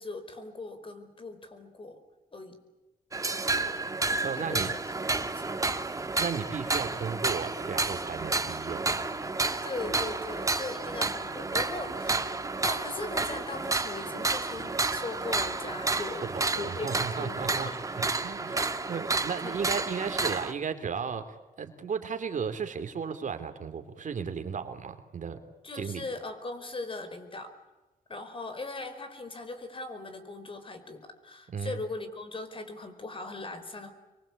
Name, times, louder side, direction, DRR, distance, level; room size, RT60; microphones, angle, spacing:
voice 1, 0.0-2.0 2.3-2.6 3.6-3.8 4.3-5.9 9.6-12.2 12.6-17.8 19.4-19.7 25.6-27.5 28.1-33.9, left 3 dB, 35° left, 9 dB, 4.8 m, -39 dB
sound 1, 3.1-20.5, right 3 dB, 20° right, 1.6 m, -31 dB
voice 2, 4.2-4.7 5.9-9.0 16.3-18.6 18.9-25.4 25.7-26.0 31.5-31.8, right 6 dB, 55° right, 7 dB, 3.1 m, -35 dB
sound 2, 7.1-17.2, left 1 dB, 85° left, 6.4 m, -52 dB
26.5 x 23.5 x 8.6 m, 1.1 s
cardioid pair, 105°, 15 cm